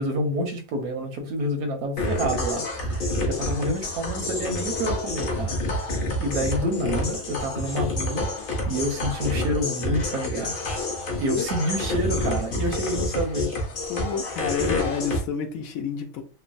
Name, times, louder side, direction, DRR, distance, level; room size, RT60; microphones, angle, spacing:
voice 1, 0.0-5.9 6.2-8.3 8.7-10.5 11.2-13.5, equal, 85° right, 1.2 m, -28 dB
sound 1, 2.0-15.2, left 2 dB, 50° left, 0.7 m, -28 dB
voice 2, 13.9-16.2, left 5 dB, 75° left, 1.0 m, -29 dB
3.1 x 2.0 x 2.5 m
omnidirectional pair, 1.5 m